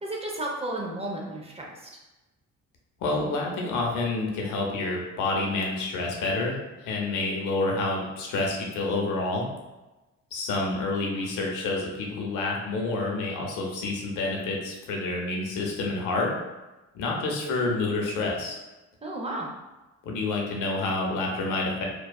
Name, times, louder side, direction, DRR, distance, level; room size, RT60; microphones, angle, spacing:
voice 1, 0.0-1.9 19.0-19.5, right 1 dB, 20° right, -1 dB, 0.5 m, -33 dB
voice 2, 3.0-6.6 6.8-9.5 10.3-16.4 16.9-18.6 20.0-21.9, left 2 dB, 80° left, 0 dB, 0.6 m, -28 dB
2.6 x 2.2 x 2.2 m, 1.1 s
cardioid pair, 90°, 30 cm